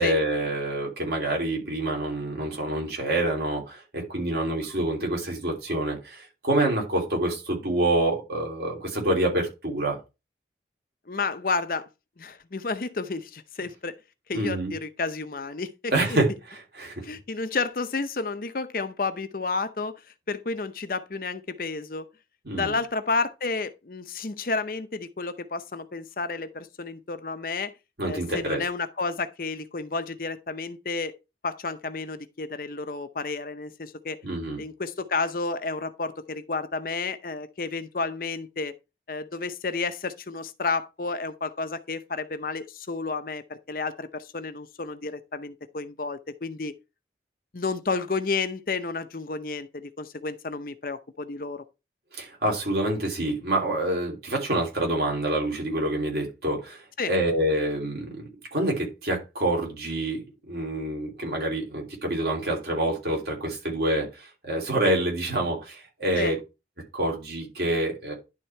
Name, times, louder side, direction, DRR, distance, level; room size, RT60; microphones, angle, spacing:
voice 1, 0.0-10.0 14.3-14.7 15.9-17.0 22.4-22.8 28.0-28.6 34.2-34.6 52.1-56.8 57.1-66.4 66.9-68.1, right 1 dB, 60° right, 3.2 m, -27 dB
voice 2, 11.1-11.9 12.2-13.9 14.3-16.2 17.0-20.0 20.3-22.1 22.6-27.7 28.1-31.2 31.4-34.2 34.6-38.7 39.1-46.7 47.5-51.6 57.0-57.1 66.2-66.3, left 4 dB, 50° left, 0.6 m, -31 dB
11.0 x 3.7 x 4.4 m
head